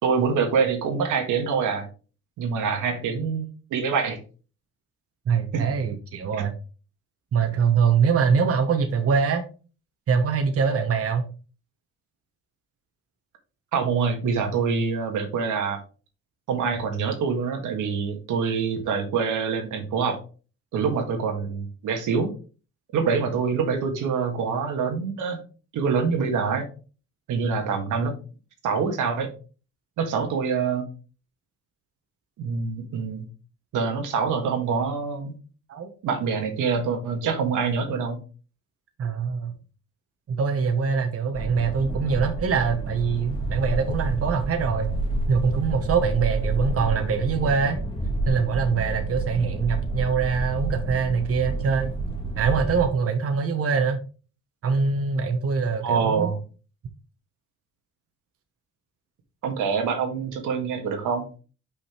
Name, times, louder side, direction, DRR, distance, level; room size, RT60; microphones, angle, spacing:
voice 1, 0.0-1.9 2.4-4.2 5.5-5.7 13.7-15.8 16.5-20.2 20.7-22.3 22.9-25.4 25.7-26.7 27.3-28.1 28.6-29.3 30.0-30.8 32.4-33.3 33.7-35.3 36.0-38.2 55.8-56.4 59.4-61.2, right 5 dB, 85° right, 4 dB, 1.8 m, -25 dB
voice 2, 5.3-6.5 7.3-9.4 10.1-11.3 35.7-35.9 39.0-39.5 40.3-44.9 45.3-47.8 48.3-51.9 52.4-54.0 54.6-56.3, right 5 dB, 50° right, 5 dB, 1.2 m, -23 dB
sound 1, 41.3-52.9, right 2 dB, 15° left, 1.9 m, -29 dB
5.7 x 5.1 x 4.4 m, 0.36 s
cardioid pair, 90°, 30 cm